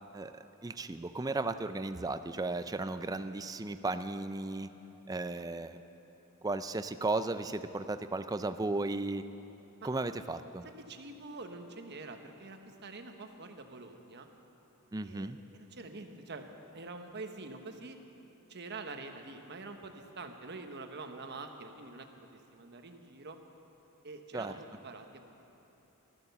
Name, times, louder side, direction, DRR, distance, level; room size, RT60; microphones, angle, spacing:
voice 1, 0.1-4.7 5.1-5.8 6.4-9.2 9.8-10.6 14.9-15.4 24.3-24.5, right 2 dB, 15° right, 10 dB, 0.4 m, -35 dB
voice 2, 10.9-14.3 15.0-18.0 18.5-22.1 22.5-23.4 24.0-25.3, right 3 dB, 50° right, 5 dB, 1.1 m, -46 dB
15.0 x 12.5 x 6.9 m, 3.0 s
head